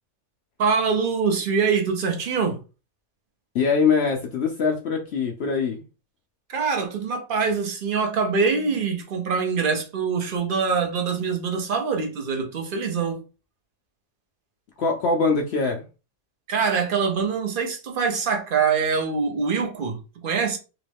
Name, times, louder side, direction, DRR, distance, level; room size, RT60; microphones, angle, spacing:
voice 1, 0.6-2.6 6.5-13.2 16.5-20.6, right 5 dB, 50° right, 0.6 m, -24 dB
voice 2, 3.5-5.8 14.8-15.9, left 5 dB, 65° left, 0.6 m, -23 dB
3.0 x 3.0 x 3.3 m
omnidirectional pair, 1.6 m